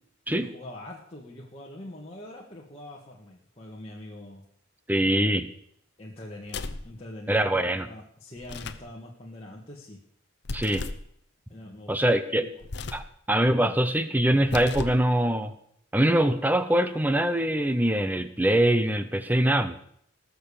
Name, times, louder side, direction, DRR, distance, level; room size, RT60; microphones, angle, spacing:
voice 1, 0.3-4.4 6.0-10.0 11.5-11.9 12.4-12.5, left 1 dB, 30° left, -3 dB, 1.8 m, -43 dB
voice 2, 4.9-5.5 7.3-7.9 10.5-10.9 11.9-12.5 12.9-13.0 13.3-15.5 15.9-19.8, right 1 dB, 10° right, 11 dB, 0.7 m, -23 dB
sound 1, 6.4-6.9 8.4-8.9 10.4-11.1 12.6-13.1 14.4-15.1, left 3 dB, 55° left, 0.8 m, -35 dB
19.5 x 6.8 x 7.0 m, 0.69 s
head